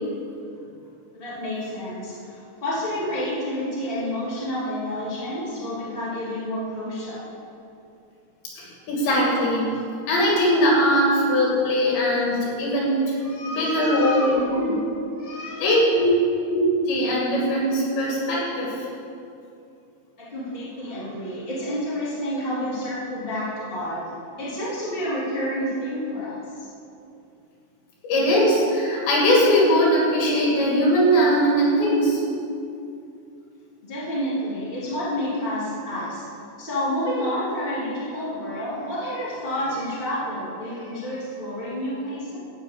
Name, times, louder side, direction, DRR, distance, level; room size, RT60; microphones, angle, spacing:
voice 1, 1.2-7.4 13.2-14.7 15.2-15.7 20.3-24.1 24.4-26.7 33.8-36.2 36.6-42.4, equal, 15° left, -9 dB, 3.4 m, -29 dB
voice 2, 8.4-9.7 10.1-13.2 13.5-14.8 15.6-16.2 16.5-18.9 28.0-32.2, equal, 80° left, -4 dB, 4.8 m, -20 dB
13.5 x 6.0 x 8.8 m, 2.6 s
omnidirectional pair, 5.0 m